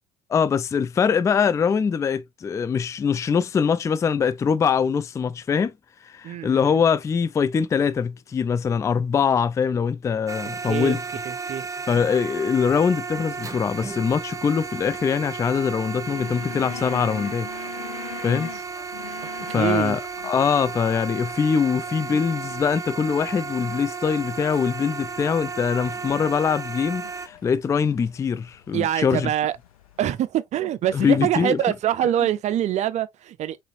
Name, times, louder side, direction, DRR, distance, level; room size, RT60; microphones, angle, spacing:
voice 1, 0.3-5.7 6.0-11.0 11.9-17.5 18.2-18.5 19.5-29.3 30.9-31.6, left 6 dB, 15° left, 0.3 m, -23 dB
voice 2, 6.2-6.8 10.6-11.0 11.3-11.7 19.2-20.0 28.7-29.6 30.0-33.6, right 11 dB, 40° right, 0.6 m, -25 dB
sound 1, 10.3-27.3, right 5 dB, 15° right, 1.1 m, -34 dB
sound 2, 13.1-30.3, left 11 dB, 75° left, 0.8 m, -44 dB
4.0 x 3.7 x 2.6 m
figure-of-eight pair, 60°, 18 cm